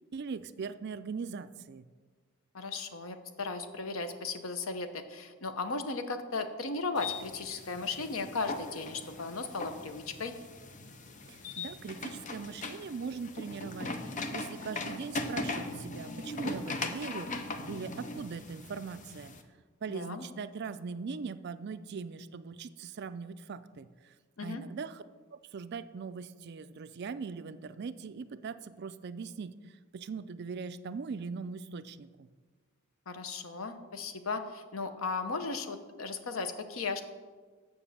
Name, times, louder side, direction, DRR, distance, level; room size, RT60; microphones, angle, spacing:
voice 1, 0.1-1.8 11.3-17.3 17.7-19.3 19.8-24.1 24.4-25.0 25.3-32.3, right 5 dB, 55° right, 12 dB, 0.4 m, -40 dB
voice 2, 2.5-10.3 19.9-20.2 24.4-24.6 33.1-37.0, left 4 dB, 75° left, 9 dB, 0.8 m, -36 dB
sound 1, 6.9-19.4, left 2 dB, 35° left, 0.7 m, -40 dB
7.2 x 6.3 x 7.1 m, 1.4 s
head